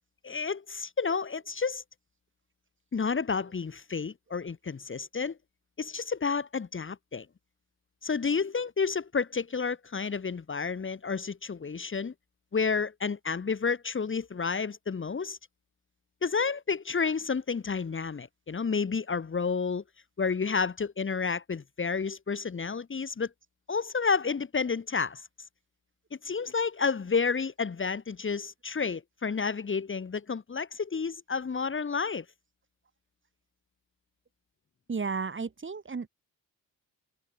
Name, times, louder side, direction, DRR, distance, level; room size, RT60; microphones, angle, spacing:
voice 1, 0.2-1.8 2.9-5.4 5.8-7.3 8.0-12.1 12.5-15.4 16.2-19.8 20.2-23.3 23.7-25.2 26.1-32.3, left 5 dB, 35° left, 2.4 m, -30 dB
voice 2, 34.9-36.1, right 5 dB, 35° right, 5.0 m, -33 dB
cardioid pair, 100°, 36 cm